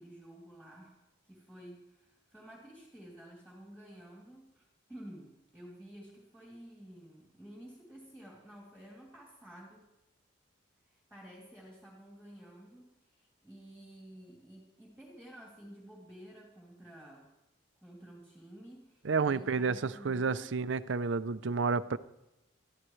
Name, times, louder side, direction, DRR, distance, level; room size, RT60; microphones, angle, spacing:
voice 1, 0.0-9.9 10.8-17.3 17.8-20.5, right 1 dB, 5° left, 2.8 m, -52 dB
voice 2, 19.0-22.0, right 4 dB, 70° right, 0.5 m, -30 dB
21.0 x 13.0 x 3.2 m
head